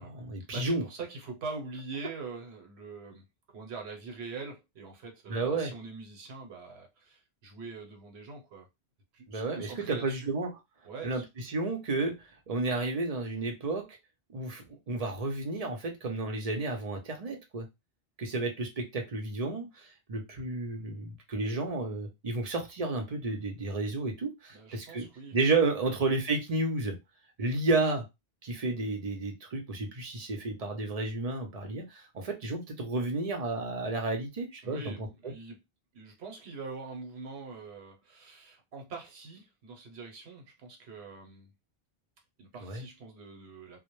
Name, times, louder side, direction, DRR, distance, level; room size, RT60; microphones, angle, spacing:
voice 1, 0.0-0.8 5.3-5.7 9.3-10.5 11.0-12.2 12.5-13.9 14.3-17.7 18.2-25.1 25.3-27.0 27.4-28.1 28.4-34.9 42.6-42.8, right 3 dB, 45° right, 0.6 m, -31 dB
voice 2, 0.5-8.7 9.1-10.3 10.8-11.2 24.5-25.4 34.6-35.6 35.9-41.5 42.4-43.8, right 4 dB, 85° right, 1.0 m, -43 dB
2.1 x 2.1 x 2.9 m
omnidirectional pair, 1.1 m